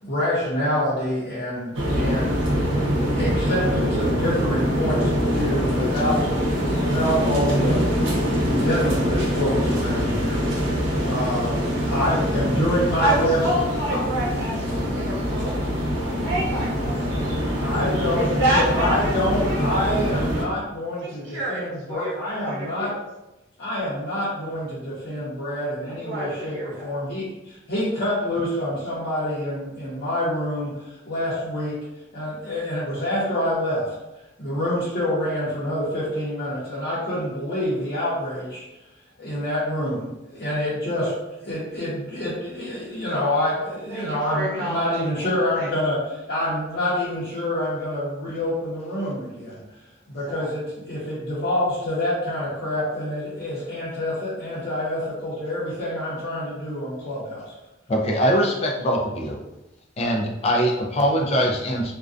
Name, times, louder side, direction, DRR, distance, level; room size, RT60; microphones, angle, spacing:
voice 1, 0.0-7.9 8.4-13.4 13.9-14.0 17.6-18.2 18.5-22.9 23.6-31.7 32.1-33.9 34.4-38.6 39.2-41.1 41.4-49.6 50.1-57.5, left 1 dB, 60° left, -10 dB, 0.7 m, -27 dB
sound 1, 1.7-20.4, equal, 90° right, 0.7 m, -24 dB
voice 2, 12.1-12.5 13.0-15.5 15.9-17.6 18.1-19.7 21.0-22.1 22.4-23.0 25.9-27.0 43.9-45.7 50.3-50.5, right 1 dB, 65° right, -6 dB, 1.0 m, -29 dB
voice 3, 57.9-59.4 60.0-61.9, equal, 35° left, 1 dB, 0.3 m, -22 dB
2.4 x 2.1 x 2.4 m, 1.0 s
head